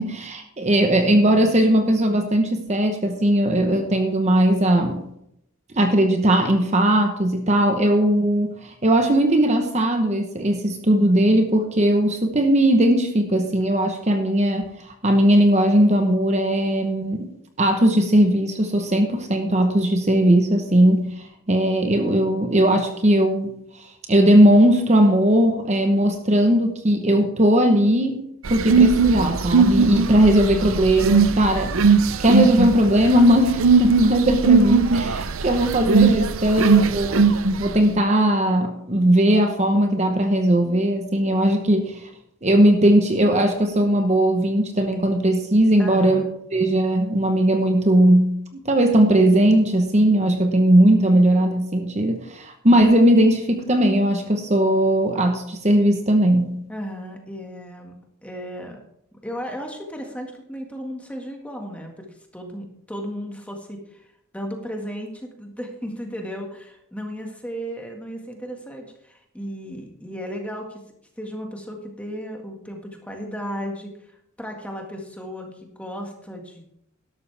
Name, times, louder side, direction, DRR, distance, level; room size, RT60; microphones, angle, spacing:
voice 1, 0.0-5.0 5.7-17.3 17.6-28.2 28.5-31.8 32.2-37.2 37.6-42.1 42.4-46.2 46.5-56.5, right 1 dB, 30° right, 5 dB, 1.0 m, -18 dB
sound 1, 28.4-37.8, right 5 dB, 70° right, 0.6 m, -19 dB
voice 2, 45.8-46.3 56.7-58.0 58.2-58.8 59.1-64.1 64.3-70.8 71.2-76.6, equal, 5° left, 2 dB, 1.8 m, -35 dB
12.5 x 12.0 x 3.4 m, 0.76 s
head